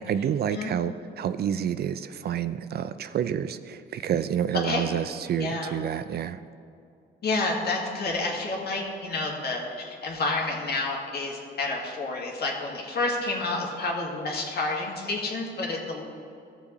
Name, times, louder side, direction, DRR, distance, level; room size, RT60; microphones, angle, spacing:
voice 1, 0.0-6.4, right 9 dB, 55° right, 12 dB, 0.4 m, -29 dB
voice 2, 5.4-5.8 7.2-16.0, left 3 dB, 55° left, -1 dB, 2.0 m, -29 dB
14.5 x 6.9 x 3.1 m, 2.6 s
cardioid pair, 90°, 20 cm